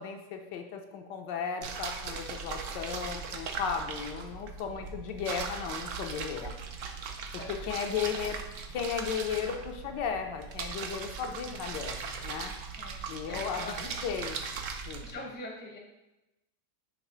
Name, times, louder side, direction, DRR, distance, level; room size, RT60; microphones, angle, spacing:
voice 1, 0.0-6.5 7.5-8.4 8.7-12.5 13.1-13.7 14.0-14.4 14.9-15.0, left 7 dB, 75° left, 4 dB, 1.3 m, -35 dB
sound 1, 1.6-15.1, right 5 dB, 85° right, 0.6 m, -39 dB
voice 2, 7.4-7.8 12.8-13.8 15.0-15.8, left 2 dB, 10° left, -1 dB, 0.5 m, -43 dB
6.0 x 3.3 x 5.4 m, 0.98 s
omnidirectional pair, 2.0 m